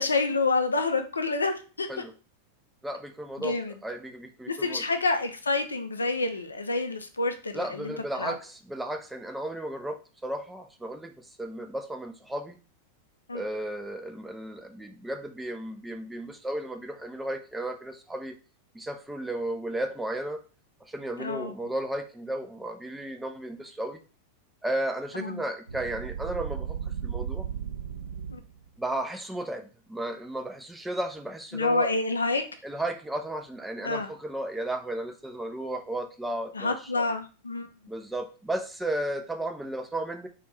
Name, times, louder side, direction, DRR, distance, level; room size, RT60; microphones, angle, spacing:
voice 1, 0.0-1.9 3.4-3.8 4.5-8.3 13.3-13.4 21.2-21.5 25.2-25.4 28.3-28.4 31.5-32.4 33.8-34.1 36.5-37.7, left 3 dB, 75° left, 7 dB, 0.3 m, -28 dB
voice 2, 2.8-3.6 3.8-4.8 7.5-12.6 13.3-18.3 18.7-20.4 20.9-24.0 24.6-26.8 27.0-27.5 28.8-31.9 32.6-37.1 37.9-40.3, right 1 dB, 5° right, 5 dB, 0.4 m, -34 dB
sound 1, 25.7-28.7, right 8 dB, 70° right, 0.4 m, -35 dB
2.5 x 2.3 x 3.2 m, 0.36 s
figure-of-eight pair, 90°, 0 cm